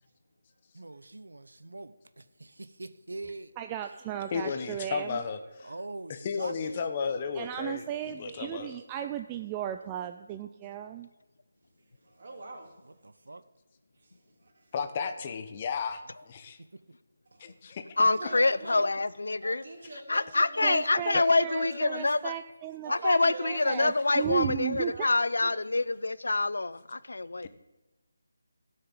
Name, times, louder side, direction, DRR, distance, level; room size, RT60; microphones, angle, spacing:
voice 1, 0.7-3.5 5.6-7.2 12.9-13.4 15.2-15.3 15.6-15.7 16.4-16.8, right 2 dB, 85° right, 0.7 m, -44 dB
voice 2, 3.6-5.2 7.4-11.1 20.6-25.1, right 11 dB, 15° right, 0.4 m, -35 dB
voice 3, 4.3-5.7 6.1-8.7 14.7-16.6 17.4-18.1 21.1-21.3 27.4-27.5, left 5 dB, 30° left, 1.0 m, -34 dB
voice 4, 11.8-12.9 13.9-14.7 17.3-17.5 18.2-19.0 19.4-21.1 21.4-22.2 22.8-24.4 24.9-25.6, right 2 dB, 55° right, 3.2 m, -45 dB
voice 5, 18.0-19.6 20.1-22.3 22.9-27.5, left 2 dB, 80° left, 0.6 m, -26 dB
13.0 x 6.7 x 8.7 m
figure-of-eight pair, 165°, 0 cm